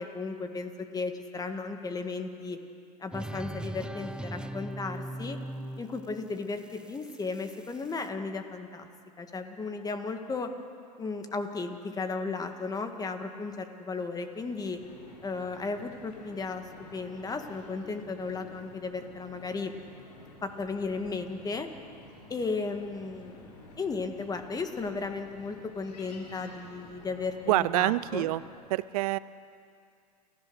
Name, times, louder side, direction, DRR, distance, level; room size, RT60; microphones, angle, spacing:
voice 1, 0.0-2.6 3.0-5.4 5.8-8.9 9.2-10.5 11.0-14.8 15.2-16.6 16.9-19.7 20.4-21.7 22.3-23.5 23.8-28.3, left 4 dB, 20° left, 6 dB, 1.9 m, -35 dB
sound 1, 3.1-8.1, right 1 dB, 5° right, 0.7 m, -40 dB
sound 2, 14.1-28.5, left 3 dB, 85° left, 4.4 m, -51 dB
voice 2, 27.5-28.4 28.7-29.2, right 17 dB, 65° right, 18 dB, 0.5 m, -26 dB
28.5 x 14.5 x 6.4 m, 2.4 s
hypercardioid pair, 100°, 20 cm